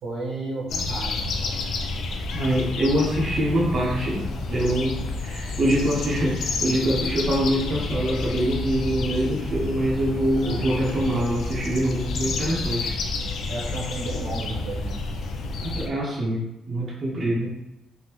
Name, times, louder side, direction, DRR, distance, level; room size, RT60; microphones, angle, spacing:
voice 1, 0.0-1.6 10.3-10.9 13.5-15.0, right 2 dB, 75° right, -4 dB, 1.1 m, -33 dB
sound 1, 0.7-15.9, left 3 dB, 70° left, 0.4 m, -30 dB
voice 2, 2.3-12.9 15.6-17.5, right 1 dB, 45° right, -5 dB, 0.7 m, -24 dB
3.6 x 2.1 x 2.9 m, 0.98 s
cardioid pair, 90°, 0 cm